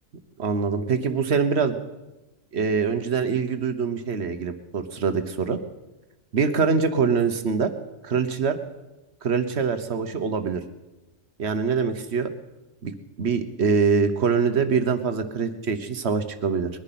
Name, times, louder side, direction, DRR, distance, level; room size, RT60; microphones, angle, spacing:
voice 1, 0.4-1.8 2.5-5.6 6.3-7.7 8.0-8.6 9.2-10.6 11.4-12.3 12.8-12.9 13.2-16.7, right 5 dB, 65° right, 9 dB, 1.3 m, -24 dB
21.0 x 10.5 x 5.9 m, 1.1 s
omnidirectional pair, 1.2 m